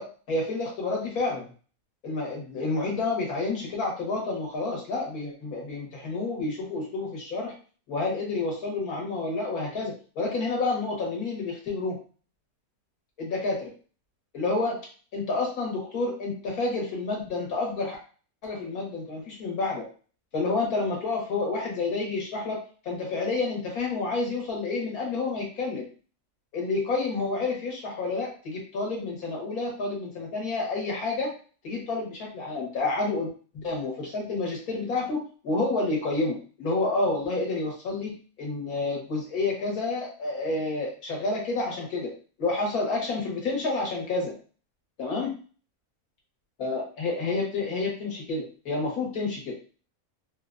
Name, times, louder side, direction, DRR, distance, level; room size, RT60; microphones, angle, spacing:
voice 1, 0.0-1.5 2.0-7.5 7.9-12.0 13.2-13.7 14.3-14.8 15.1-18.0 18.4-19.9 20.3-25.9 26.5-31.3 31.6-33.3 33.5-42.1 42.4-44.3 45.0-45.3 46.6-49.5, left 3 dB, 90° left, -2 dB, 1.7 m, -29 dB
3.7 x 2.3 x 2.5 m, 0.39 s
omnidirectional pair, 1.5 m